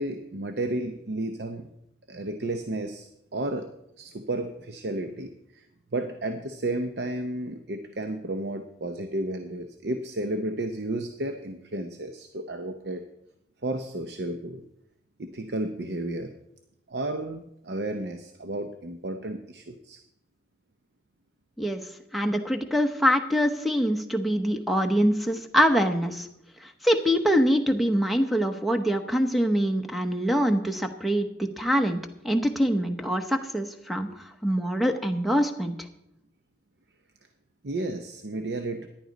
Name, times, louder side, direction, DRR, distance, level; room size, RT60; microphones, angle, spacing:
voice 1, 0.0-1.7 2.1-3.7 4.0-5.7 5.9-13.0 13.6-14.6 15.2-16.3 16.9-20.0 37.6-38.9, right 2 dB, 70° right, 7 dB, 0.7 m, -32 dB
voice 2, 22.1-26.3 26.8-32.0 32.2-34.1 34.4-35.7, equal, ahead, 4 dB, 0.9 m, -24 dB
14.0 x 10.5 x 4.0 m, 0.83 s
head